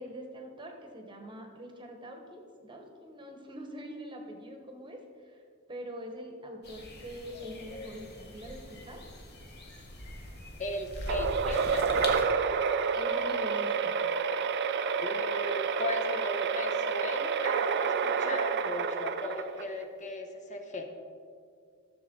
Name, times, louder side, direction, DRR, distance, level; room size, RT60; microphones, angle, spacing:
voice 1, 0.0-5.4 5.7-9.0 12.9-14.0, equal, 25° right, 2 dB, 1.1 m, -44 dB
sound 1, 6.6-12.2, left 1 dB, 55° left, 1.4 m, -42 dB
voice 2, 10.6-12.1 15.0-20.8, left 2 dB, 35° left, 5 dB, 1.0 m, -37 dB
sound 2, 11.1-19.8, right 6 dB, 55° right, 0.5 m, -29 dB
13.5 x 6.8 x 3.9 m, 2.2 s
head